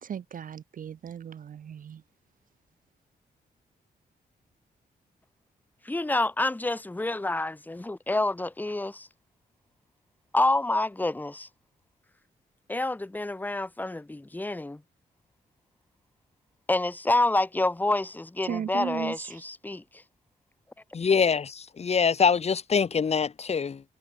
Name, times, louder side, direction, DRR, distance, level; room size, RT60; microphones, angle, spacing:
voice 1, 0.0-2.0 18.5-19.1, right 8 dB, 55° right, 0.6 m, -35 dB
voice 2, 5.8-9.1 10.3-11.5 12.7-14.8 16.7-19.8, left 2 dB, 10° left, 0.9 m, -28 dB
voice 3, 20.9-23.8, left 6 dB, 40° left, 0.8 m, -24 dB
cardioid pair, 70°, 17 cm